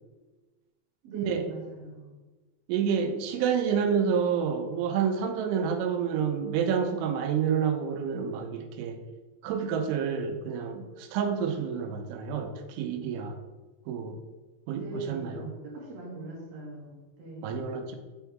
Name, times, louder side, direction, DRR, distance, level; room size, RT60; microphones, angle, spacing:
voice 1, 1.0-2.1 14.7-17.6, right 2 dB, 60° right, -4 dB, 1.7 m, -40 dB
voice 2, 2.7-9.0 9.4-13.4 13.9-14.2 14.7-15.5 17.4-18.0, right 7 dB, 85° right, 6 dB, 3.1 m, -29 dB
6.1 x 6.0 x 3.4 m, 1.2 s
omnidirectional pair, 5.3 m